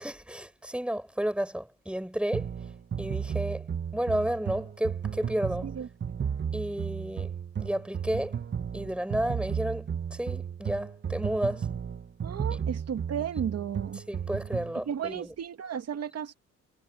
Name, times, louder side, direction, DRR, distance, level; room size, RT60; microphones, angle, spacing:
voice 1, 0.0-2.5 3.0-3.7 3.9-5.7 6.5-7.3 7.6-8.4 8.7-11.7 12.5-12.6 14.1-15.3, right 1 dB, 5° right, 7.7 m, -32 dB
sound 1, 2.3-14.8, right 7 dB, 35° right, 1.4 m, -34 dB
voice 2, 12.2-14.0 14.9-16.3, right 8 dB, 55° right, 2.4 m, -34 dB
cardioid pair, 90°, 30 cm